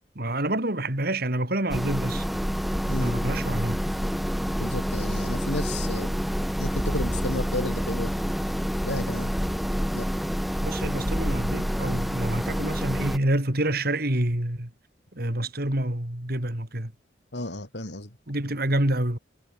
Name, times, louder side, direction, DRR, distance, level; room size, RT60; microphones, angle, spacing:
voice 1, 0.2-2.3 3.0-3.8 10.6-14.7 15.1-16.9 18.3-19.2, right 1 dB, 60° right, 3.6 m, -27 dB
sound 1, 1.7-13.2, equal, ahead, 1.0 m, -28 dB
voice 2, 2.9-3.2 4.6-6.1 6.6-8.2 8.8-9.3 9.9-10.0 17.3-18.2, left 1 dB, 70° left, 4.7 m, -32 dB
head